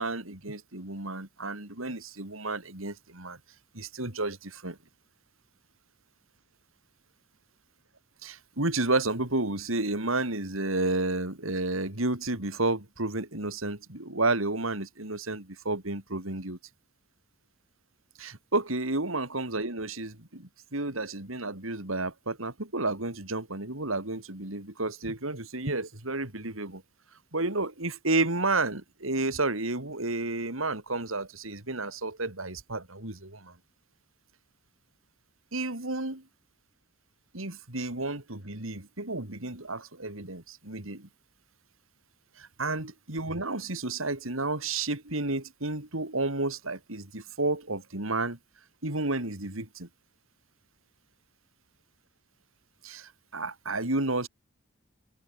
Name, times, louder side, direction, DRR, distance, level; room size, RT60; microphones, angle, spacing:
voice 1, 0.0-3.4 3.7-4.8 8.2-16.6 18.2-26.8 27.3-33.5 35.5-36.2 37.3-41.1 42.4-48.4 48.8-49.9 52.8-54.3, right 2 dB, 80° right, 4.2 m, -31 dB
open air
head